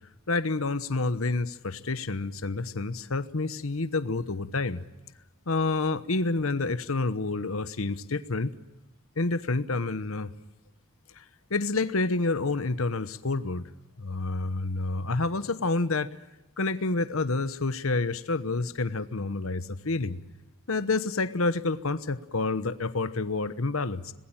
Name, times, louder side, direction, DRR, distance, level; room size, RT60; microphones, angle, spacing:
voice 1, 0.3-4.8 5.5-8.5 9.2-10.3 11.2-11.3 11.5-13.7 14.0-16.1 16.6-20.2 20.7-24.1, left 3 dB, 75° left, 13 dB, 1.1 m, -28 dB
26.0 x 20.0 x 8.8 m, 1.0 s
head